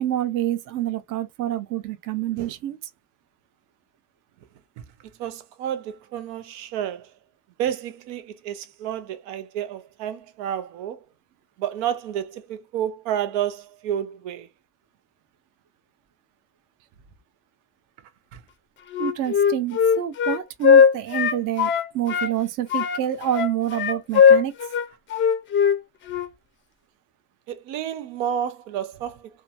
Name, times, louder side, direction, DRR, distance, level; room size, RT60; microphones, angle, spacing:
voice 1, 0.0-2.8 19.0-21.7 21.9-24.5, right 12 dB, 50° right, 0.5 m, -27 dB
voice 2, 5.2-7.1 7.6-11.0 11.6-14.5 27.5-29.2, right 10 dB, 90° right, 0.7 m, -30 dB
Wind instrument woodwind instrument, 18.9-22.3 22.7-25.8 26.1-26.3, left 7 dB, 30° left, 0.4 m, -19 dB
2.9 x 2.2 x 2.4 m
cardioid pair, 145°, 43 cm